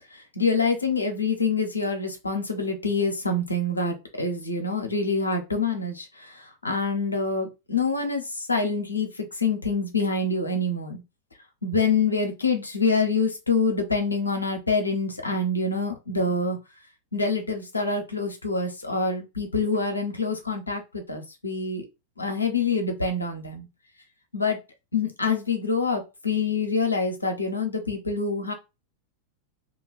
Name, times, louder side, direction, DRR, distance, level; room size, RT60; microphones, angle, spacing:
voice 1, 0.4-6.0 6.6-8.2 8.5-9.1 9.4-11.0 11.6-16.6 17.1-20.8 21.1-21.8 22.2-23.7 24.3-24.6 24.9-28.5, left 4 dB, 80° left, 4 dB, 0.7 m, -26 dB
2.5 x 2.2 x 3.1 m, 0.26 s
figure-of-eight pair, 90°, 0 cm